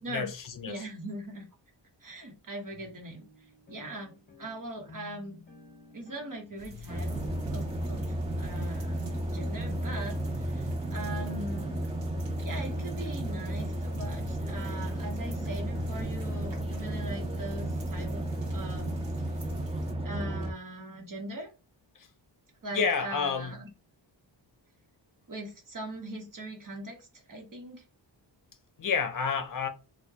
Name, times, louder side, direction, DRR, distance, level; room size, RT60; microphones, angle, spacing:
voice 1, 0.1-0.8 22.0-22.1 22.7-23.6 28.8-29.7, left 6 dB, 45° left, 0.6 m, -30 dB
voice 2, 0.7-1.5 2.0-3.2 3.7-5.4 5.9-7.2 7.5-9.0 9.3-11.8 12.4-19.1 20.0-21.5 22.6-23.7 25.3-27.8, right 1 dB, 45° right, 1.1 m, -40 dB
sound 1, 2.7-19.0, left 3 dB, 20° left, 0.9 m, -50 dB
sound 2, 6.6-19.9, right 1 dB, 70° right, 1.0 m, -48 dB
sound 3, 6.9-20.5, right 1 dB, 15° right, 0.4 m, -33 dB
4.3 x 2.3 x 2.8 m
wide cardioid pair, 160°, 45 cm